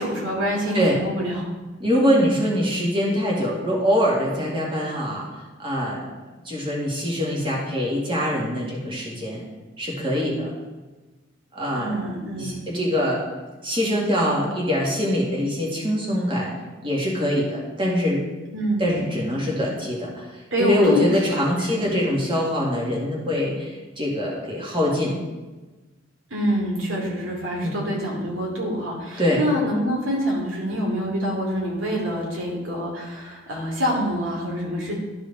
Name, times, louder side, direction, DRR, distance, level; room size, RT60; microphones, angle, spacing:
voice 1, 0.0-1.4 11.7-12.6 18.5-19.0 20.5-21.4 21.7-22.0 26.3-35.0, equal, 90° right, -2 dB, 2.5 m, -26 dB
voice 2, 1.8-5.3 5.6-6.1 6.4-9.4 9.8-10.5 11.5-12.0 12.4-13.2 13.6-16.5 16.8-18.2 18.8-25.2 27.6-27.8 29.2-29.4, equal, 25° right, -4 dB, 2.0 m, -23 dB
12.5 x 4.9 x 4.0 m, 1.2 s
head